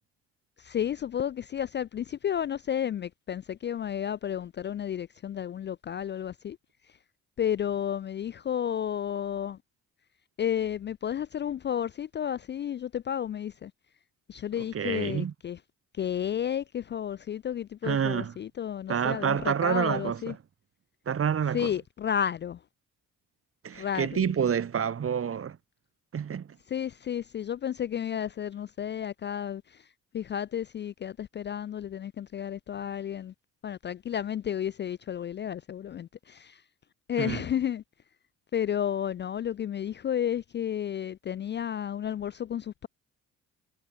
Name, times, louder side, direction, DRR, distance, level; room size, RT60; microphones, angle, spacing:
voice 1, 0.6-6.6 7.4-9.6 10.4-13.7 14.3-15.6 16.0-20.3 21.5-22.6 23.7-24.3 26.7-29.8 30.1-33.3 33.6-36.6 37.1-37.8 38.5-42.9, left 9 dB, 35° left, 0.4 m, -32 dB
voice 2, 14.6-15.3 17.8-18.3 18.9-20.4 21.1-21.7 23.6-25.6 26.1-26.5 37.2-37.4, right 7 dB, 40° right, 1.5 m, -28 dB
supercardioid pair, 70°, 33 cm